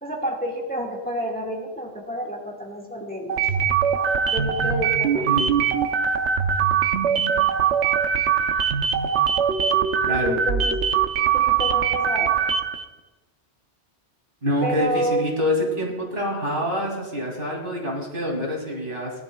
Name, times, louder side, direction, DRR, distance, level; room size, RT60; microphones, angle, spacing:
voice 1, 0.0-3.5 4.2-5.3 10.3-10.8 11.2-12.3 14.6-15.2, right 1 dB, 10° left, -2 dB, 1.7 m, -29 dB
sound 1, 3.3-12.8, right 7 dB, 85° right, 1.0 m, -22 dB
voice 2, 5.2-5.8 10.1-10.4 14.4-19.1, left 1 dB, 50° right, -1 dB, 2.6 m, -26 dB
18.5 x 11.0 x 2.2 m, 1.1 s
omnidirectional pair, 1.1 m